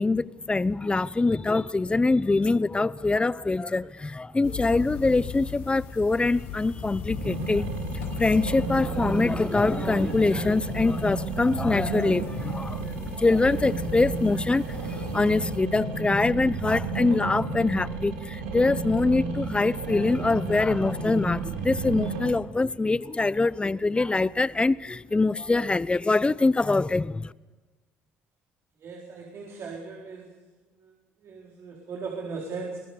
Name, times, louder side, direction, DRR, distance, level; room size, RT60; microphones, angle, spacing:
voice 1, 0.0-27.3, left 3 dB, 20° left, 0.7 m, -24 dB
sound 1, 4.4-15.6, left 7 dB, 80° left, 6.0 m, -38 dB
sound 2, 7.1-22.3, right 4 dB, 85° right, 3.7 m, -32 dB
voice 2, 28.8-30.3 30.8-30.9 31.2-32.8, right 4 dB, 55° right, 4.4 m, -37 dB
22.0 x 20.0 x 7.0 m
hypercardioid pair, 60°, 5 cm